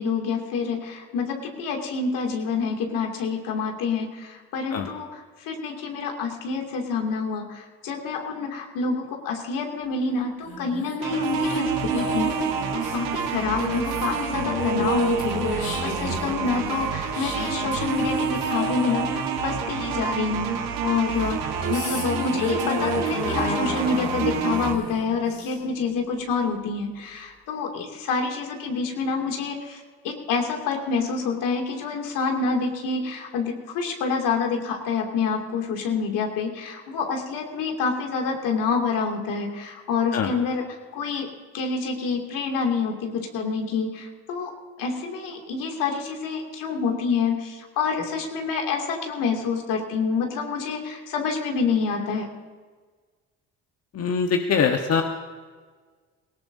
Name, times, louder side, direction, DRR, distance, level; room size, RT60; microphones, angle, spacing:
voice 1, 0.0-12.3 12.7-40.6 40.9-41.3 41.5-44.5 44.8-52.3, left 5 dB, 70° left, 2 dB, 2.7 m, -27 dB
sound 1, 10.4-20.3 21.2-25.9, left 1 dB, 90° left, 3.3 m, -30 dB
sound 2, 11.0-24.7, right 7 dB, 80° right, 1.5 m, -29 dB
voice 2, 53.9-55.0, left 6 dB, 45° left, 4 dB, 1.2 m, -23 dB
19.0 x 18.0 x 2.8 m, 1.5 s
supercardioid pair, 65°, 34 cm